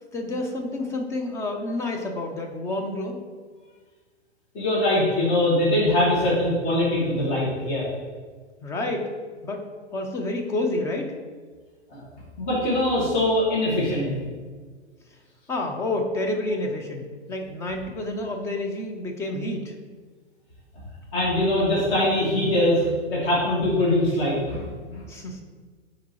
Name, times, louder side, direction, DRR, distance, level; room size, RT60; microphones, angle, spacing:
voice 1, 0.1-3.2 8.6-9.1 9.4-9.6 9.9-11.1 15.5-19.7 25.1-25.4, left 2 dB, 10° left, 3 dB, 0.3 m, -29 dB
voice 2, 4.5-7.9 11.9-12.0 12.4-14.1 21.1-25.0, left 1 dB, 30° left, -7 dB, 1.9 m, -22 dB
9.2 x 3.8 x 3.0 m, 1.5 s
hypercardioid pair, 115°, 34 cm